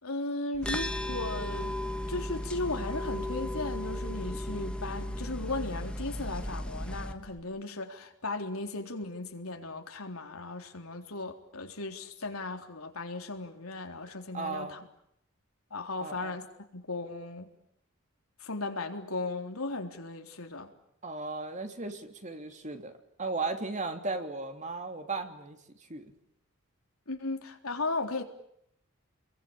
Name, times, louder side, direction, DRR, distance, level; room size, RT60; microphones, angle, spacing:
voice 1, 0.0-1.8 2.1-14.8 15.7-16.5 16.7-17.5 18.4-20.7 27.1-28.2, left 2 dB, 80° left, 4 dB, 3.8 m, -36 dB
sound 1, 0.5-7.4, equal, 40° left, 4.1 m, -55 dB
sound 2, 0.6-7.1, left 1 dB, 5° left, 1.6 m, -35 dB
voice 2, 14.3-14.8 16.0-16.4 21.0-25.6 25.9-26.1, right 3 dB, 35° right, 6 dB, 3.1 m, -36 dB
30.0 x 22.5 x 8.9 m, 0.74 s
head